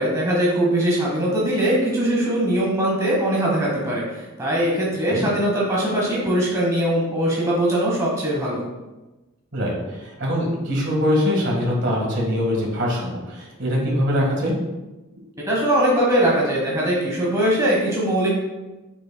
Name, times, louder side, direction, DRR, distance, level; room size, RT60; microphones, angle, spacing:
voice 1, 0.0-8.6 15.5-18.3, right 1 dB, 15° right, -4 dB, 1.1 m, -21 dB
voice 2, 9.5-14.5, equal, 55° right, -2 dB, 1.6 m, -23 dB
6.9 x 6.3 x 2.2 m, 1.1 s
head